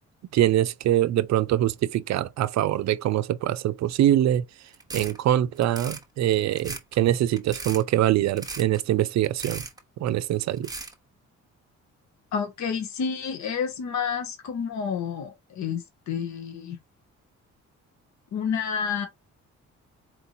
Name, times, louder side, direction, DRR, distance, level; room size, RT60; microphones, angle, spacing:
voice 1, 0.3-4.4 4.9-9.7 10.0-10.7, right 12 dB, 65° right, 0.5 m, -23 dB
sound 1, 4.7-5.2 5.6-6.0 6.5-6.9 7.3-7.8 8.4-8.8 9.2-9.8 10.6-10.9, right 3 dB, 10° right, 0.9 m, -37 dB
voice 2, 12.3-16.8 18.3-19.1, left 6 dB, 65° left, 1.1 m, -29 dB
4.4 x 2.8 x 2.7 m
cardioid pair, 90°, 30 cm